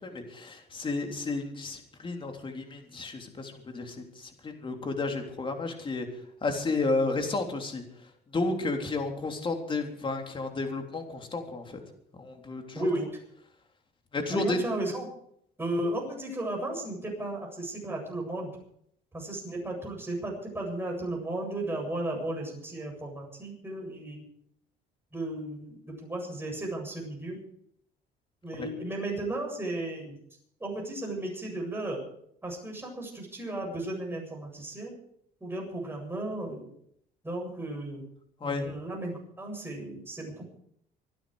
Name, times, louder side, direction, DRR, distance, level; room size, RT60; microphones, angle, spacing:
voice 1, 0.0-6.1 6.4-7.8 8.3-11.8 12.2-12.9 14.1-14.6 28.6-28.7 38.4-38.7, left 3 dB, 30° left, 3 dB, 3.5 m, -32 dB
voice 2, 12.7-13.1 14.3-15.1 15.6-18.5 19.1-24.3 25.1-27.4 28.4-30.2 30.6-32.0 32.4-35.0 35.4-36.7 37.2-38.0 38.4-40.4, right 1 dB, 15° right, 0 dB, 7.7 m, -34 dB
25.5 x 10.0 x 5.0 m, 0.70 s
cardioid pair, 110°, 17 cm